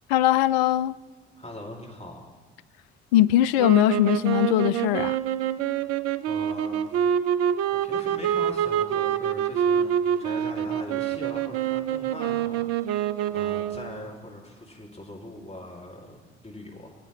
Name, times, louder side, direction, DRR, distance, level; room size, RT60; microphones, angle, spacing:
voice 1, 0.1-0.9 3.1-5.2, left 14 dB, 65° left, 0.4 m, -20 dB
voice 2, 1.4-2.2 6.2-7.0 7.7-16.9, left 1 dB, 20° left, 2.7 m, -41 dB
sound 1, 3.6-14.0, right 9 dB, 50° right, 0.6 m, -26 dB
19.0 x 8.8 x 3.2 m
figure-of-eight pair, 50°, 34 cm